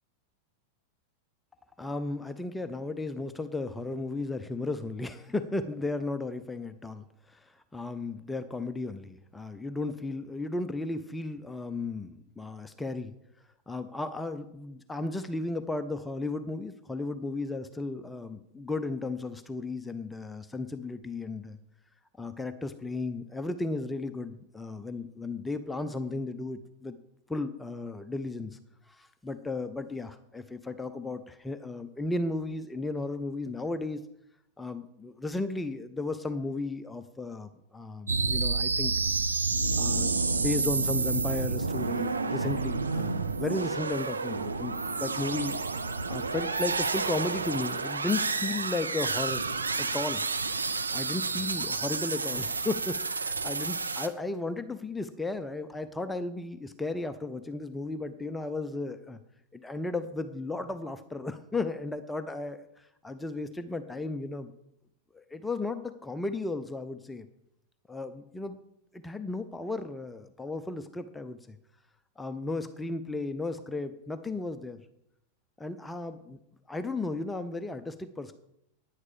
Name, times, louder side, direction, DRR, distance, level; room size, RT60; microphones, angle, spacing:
voice 1, 1.8-13.1 13.7-21.6 22.2-27.0 27.3-28.6 28.9-34.1 34.6-38.9 39.8-45.6 46.1-49.4 49.8-50.2 50.9-59.2 59.5-64.5 65.1-67.3 67.9-68.6 68.9-71.6 72.2-74.8 75.6-76.4 76.7-78.3, left 2 dB, 10° left, 10 dB, 0.6 m, -35 dB
sound 1, 38.1-54.1, right 4 dB, 75° right, 0.7 m, -30 dB
9.7 x 9.7 x 5.2 m, 0.79 s
figure-of-eight pair, 90°, 0 cm